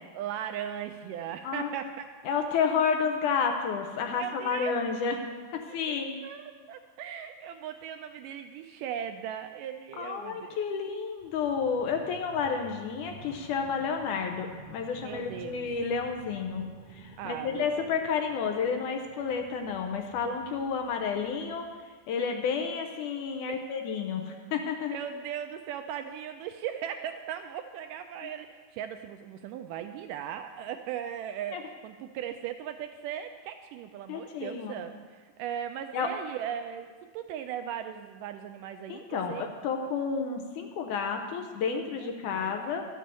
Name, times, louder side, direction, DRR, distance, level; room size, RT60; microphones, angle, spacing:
voice 1, 0.1-2.1 4.1-4.8 5.9-10.6 11.8-11.9 15.0-15.7 17.2-17.7 23.5-23.7 24.8-39.5 41.6-42.5, right 9 dB, 80° right, 7 dB, 2.0 m, -38 dB
voice 2, 2.3-5.2 5.5-6.2 10.0-16.6 16.9-21.7 22.1-25.0 31.5-31.6 34.1-34.8 35.9-36.1 38.9-42.9, left 6 dB, 75° left, 4 dB, 2.1 m, -31 dB
sound 1, 11.2-21.7, right 2 dB, 10° right, 2.9 m, -51 dB
12.5 x 7.5 x 6.9 m, 1.5 s
omnidirectional pair, 4.1 m